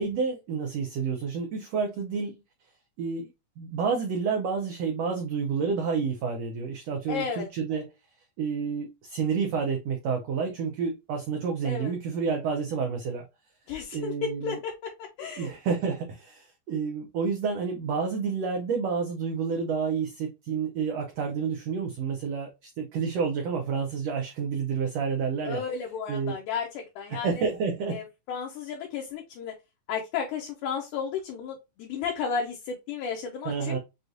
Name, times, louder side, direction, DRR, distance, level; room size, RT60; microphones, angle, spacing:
voice 1, 0.0-2.3 3.0-3.3 3.6-7.9 8.4-13.3 13.9-14.6 15.4-25.6 26.1-26.3 27.1-28.0 33.4-33.8, right 5 dB, 85° right, 1.4 m, -29 dB
voice 2, 7.1-7.5 11.6-11.9 13.7-14.9 15.2-15.5 25.4-27.5 27.9-29.5 29.9-33.8, left 6 dB, 75° left, 2.1 m, -33 dB
6.4 x 2.3 x 2.6 m
omnidirectional pair, 3.8 m